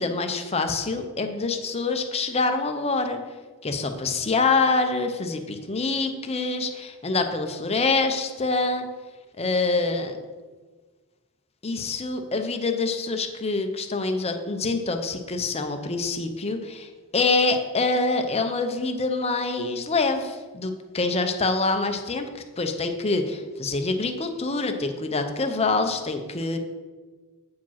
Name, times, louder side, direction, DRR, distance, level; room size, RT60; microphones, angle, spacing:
voice 1, 0.0-3.2 3.6-8.8 9.4-10.2 11.6-22.3 22.6-26.6, left 3 dB, 25° left, 6 dB, 0.7 m, -25 dB
8.4 x 5.1 x 5.7 m, 1.4 s
head